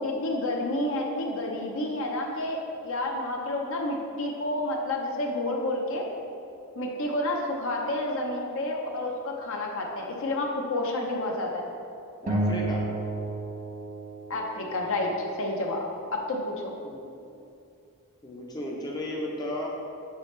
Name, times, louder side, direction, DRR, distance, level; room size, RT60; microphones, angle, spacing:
voice 1, 0.0-6.1 6.8-11.6 14.3-15.1 15.4-16.7, left 1 dB, 60° left, 0 dB, 0.8 m, -30 dB
voice 2, 12.2-12.8 16.8-17.0 18.2-19.7, left 1 dB, 20° left, -3 dB, 0.6 m, -34 dB
sound 1, 12.3-14.9, right 2 dB, 35° right, 0.6 m, -31 dB
6.6 x 4.7 x 3.2 m, 2.6 s
head